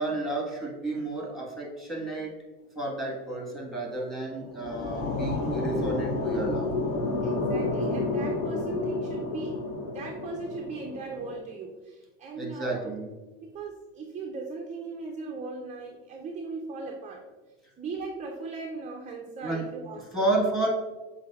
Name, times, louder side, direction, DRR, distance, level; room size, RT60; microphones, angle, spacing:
voice 1, 0.0-2.3 2.7-6.7 12.4-13.1 19.4-19.7 20.1-20.7, right 2 dB, ahead, -2 dB, 1.4 m, -31 dB
sound 1, 4.2-11.4, left 3 dB, 70° left, 1.1 m, -30 dB
voice 2, 7.2-12.9 13.4-17.2 17.8-20.4, right 3 dB, 20° right, 1 dB, 0.4 m, -38 dB
7.4 x 2.6 x 2.4 m, 1.2 s
supercardioid pair, 105°, 40 cm